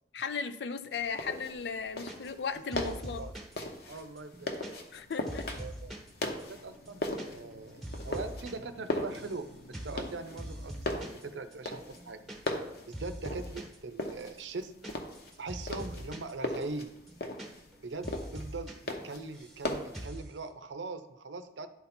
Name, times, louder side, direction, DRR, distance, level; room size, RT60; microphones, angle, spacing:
voice 1, 0.1-3.2 4.9-5.6, left 5 dB, 75° left, 11 dB, 0.5 m, -36 dB
sound 1, 0.9-20.1, left 1 dB, 55° left, 0.9 m, -39 dB
sound 2, 2.1-2.5 2.7-3.5 4.0-6.1 6.4-6.5 6.7-7.3 7.5-8.5 8.8-9.4 9.7-10.0 10.4-11.2 11.5-11.6 11.9-12.7 12.9-13.8 14.2-16.3 16.6-16.7 17.0-17.8 18.0-18.7 19.0-19.6 19.9-20.3, equal, ahead, 1.1 m, -43 dB
voice 2, 2.7-3.3 3.9-4.5 5.6-5.9 6.5-9.5 9.8-12.2 12.9-14.7 15.4-17.0 17.8-21.7, right 3 dB, 85° right, 10 dB, 0.6 m, -41 dB
10.5 x 4.1 x 4.3 m, 0.85 s
head